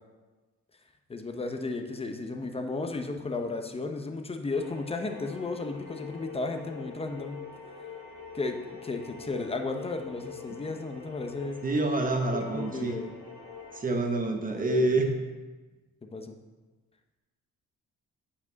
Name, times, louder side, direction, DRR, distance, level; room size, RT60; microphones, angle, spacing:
voice 1, 1.1-7.5 8.3-11.6 12.3-13.1 14.5-15.0 16.0-16.4, left 3 dB, 20° left, 5 dB, 0.8 m, -34 dB
sound 1, 4.5-13.8, left 6 dB, 80° left, 2.3 m, -44 dB
voice 2, 11.6-12.9 13.7-15.1, right 2 dB, 30° right, 3 dB, 1.1 m, -27 dB
8.5 x 5.4 x 4.0 m, 1.2 s
cardioid pair, 90°, 30 cm